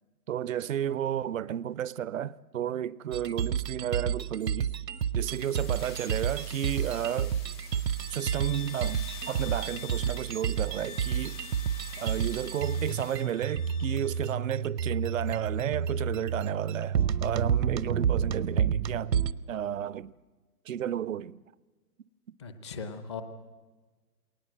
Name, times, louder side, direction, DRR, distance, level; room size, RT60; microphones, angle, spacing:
voice 1, 0.3-4.7 5.1-7.4 8.1-11.4 12.0-19.1 19.5-20.1 20.7-21.4, right 10 dB, 55° right, 0.6 m, -32 dB
sound 1, 3.1-19.3, right 8 dB, 85° right, 0.9 m, -30 dB
sound 2, 5.2-13.2, left 5 dB, 75° left, 5.8 m, -49 dB
sound 3, 8.0-14.4, left 9 dB, 45° left, 1.8 m, -47 dB
voice 2, 22.4-23.2, left 5 dB, 15° left, 0.7 m, -38 dB
21.0 x 19.0 x 7.7 m
hypercardioid pair, 150°, 49 cm